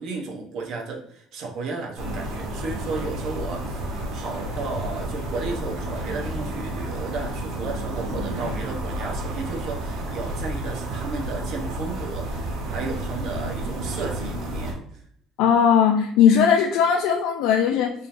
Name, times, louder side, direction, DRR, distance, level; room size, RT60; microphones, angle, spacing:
voice 1, 0.0-14.8, right 3 dB, 55° right, 2 dB, 0.9 m, -33 dB
sound 1, 2.0-14.7, right 1 dB, 80° right, 1.7 m, -31 dB
voice 2, 15.4-17.9, left 7 dB, 75° left, 2 dB, 0.4 m, -18 dB
4.2 x 3.7 x 2.6 m, 0.67 s
cardioid pair, 165°, 0 cm